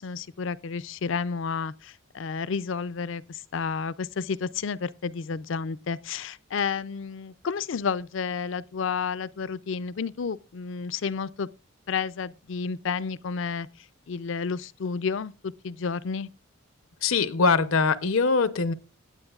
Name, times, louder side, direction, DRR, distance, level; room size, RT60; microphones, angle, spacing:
voice 1, 0.0-11.5 11.9-13.7 14.1-16.3, left 5 dB, 65° left, 0.4 m, -31 dB
voice 2, 17.0-18.7, left 4 dB, 85° left, 0.8 m, -22 dB
18.0 x 8.6 x 2.4 m
head